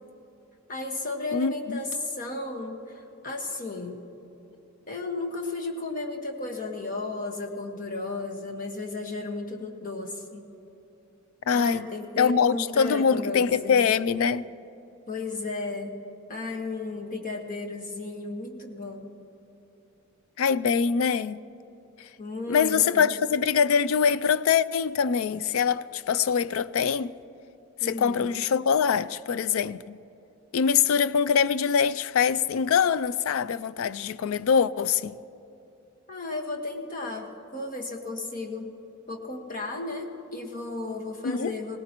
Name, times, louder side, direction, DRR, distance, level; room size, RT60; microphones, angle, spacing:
voice 1, 0.7-4.0 4.9-10.4 11.5-13.8 15.1-16.0 16.3-19.1 22.2-23.1 27.8-28.3 36.1-38.7 39.1-41.8, left 3 dB, 40° left, 1.5 m, -34 dB
voice 2, 1.3-1.8 11.5-11.9 12.2-14.4 20.4-21.4 22.5-27.1 27.8-30.0 30.5-35.2 41.2-41.5, left 6 dB, 70° left, 0.4 m, -24 dB
21.0 x 17.5 x 3.0 m
head